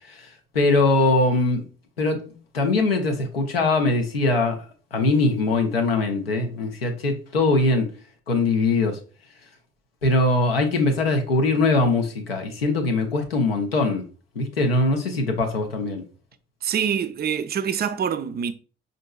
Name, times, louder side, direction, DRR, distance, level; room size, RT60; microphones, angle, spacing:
voice 1, 0.1-1.7 2.0-7.9 8.3-9.0 10.0-14.0 14.4-16.0, left 2 dB, 90° left, 0.6 m, -22 dB
voice 2, 16.6-18.5, right 7 dB, 35° right, 0.4 m, -25 dB
5.2 x 2.6 x 2.2 m
figure-of-eight pair, 45°, 29 cm